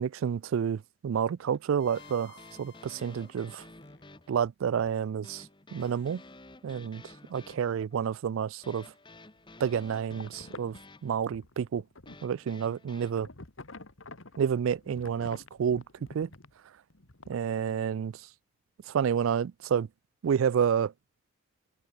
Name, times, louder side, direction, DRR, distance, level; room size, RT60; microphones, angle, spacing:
voice 1, 0.0-3.6 4.3-5.4 5.7-6.2 6.6-7.0 7.3-8.9 9.6-11.8 12.2-13.3 14.4-15.8 16.1-16.3 17.3-18.1 18.9-19.9 20.2-20.9, right 7 dB, 75° right, 0.3 m, -29 dB
sound 1, 1.4-4.5 5.8-6.4, left 5 dB, 55° left, 4.8 m, -57 dB
sound 2, 1.5-13.1, left 2 dB, 20° left, 1.4 m, -52 dB
sound 3, 9.3-12.3 13.1-16.5 16.9-17.4, left 2 dB, 70° left, 2.0 m, -49 dB
open air
head